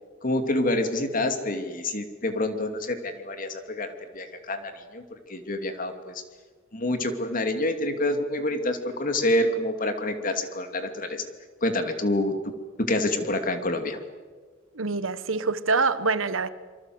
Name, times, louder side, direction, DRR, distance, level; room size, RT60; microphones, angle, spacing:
voice 1, 0.2-5.0 5.3-6.2 6.7-11.2 11.6-12.3 12.8-14.0, left 1 dB, 45° left, 2.7 m, -27 dB
voice 2, 14.7-16.5, right 4 dB, 85° right, 1.3 m, -25 dB
26.5 x 24.5 x 8.0 m
head